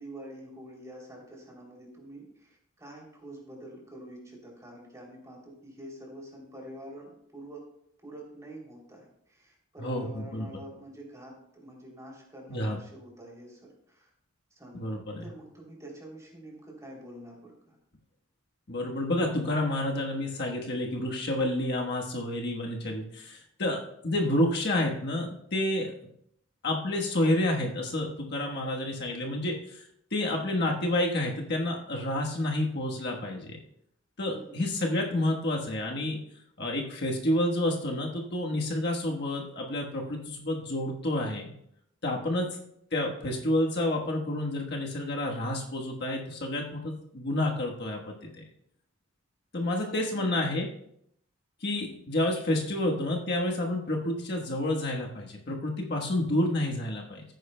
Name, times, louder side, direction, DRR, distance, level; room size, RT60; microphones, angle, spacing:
voice 1, 0.0-7.6 8.0-14.1 14.6-14.8 15.2-17.8 34.3-34.6 42.2-42.5 49.9-50.5 52.7-52.8, right 1 dB, 15° right, -2 dB, 3.0 m, -47 dB
voice 2, 9.8-10.5 12.5-12.8 14.7-15.3 18.7-25.9 26.6-29.8 30.1-33.6 34.2-36.2 36.6-41.5 42.0-42.5 42.9-48.4 49.5-50.7 51.6-57.2, left 1 dB, 55° left, 0 dB, 1.3 m, -29 dB
16.0 x 9.3 x 2.2 m, 0.72 s
head